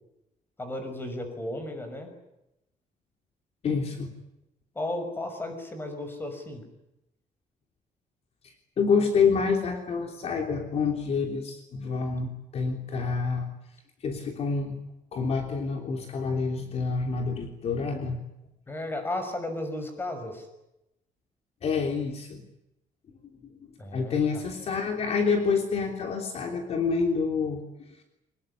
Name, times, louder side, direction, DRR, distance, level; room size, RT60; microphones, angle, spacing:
voice 1, 0.6-2.1 4.7-6.6 18.7-20.5 23.8-24.4, left 1 dB, 15° left, 7 dB, 6.0 m, -34 dB
voice 2, 3.6-4.1 8.8-13.5 14.0-14.7 15.1-18.2 21.6-22.4 23.9-27.6, left 5 dB, 45° left, 4 dB, 3.3 m, -27 dB
25.0 x 20.0 x 9.8 m, 0.88 s
cardioid pair, 175°, 14 cm